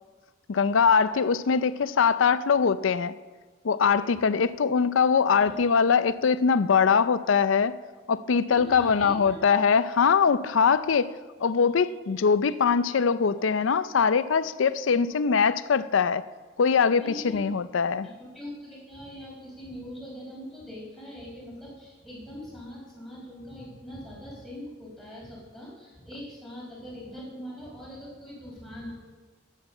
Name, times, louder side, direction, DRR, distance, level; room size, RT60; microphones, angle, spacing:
voice 1, 0.5-3.1 3.6-7.8 8.1-11.1 11.4-16.2 16.6-18.1, left 6 dB, 90° left, 0.5 m, -22 dB
voice 2, 8.5-9.4 17.0-17.4 18.2-28.9, equal, ahead, 4.8 m, -42 dB
13.5 x 9.2 x 5.6 m
head